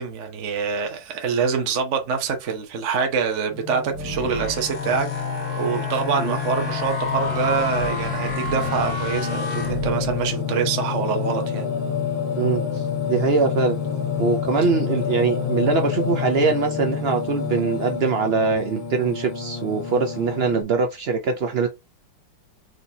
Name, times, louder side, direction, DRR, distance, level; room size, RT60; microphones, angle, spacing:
voice 1, 0.0-5.1 5.6-11.7, right 6 dB, 50° right, 1.0 m, -25 dB
Singing, 3.5-20.6, left 7 dB, 85° left, 2.2 m, -28 dB
sound 1, 3.9-10.3, equal, 55° left, 2.1 m, -31 dB
voice 2, 12.4-13.8 14.2-21.7, right 4 dB, 90° right, 0.5 m, -22 dB
4.8 x 4.0 x 2.8 m
omnidirectional pair, 2.0 m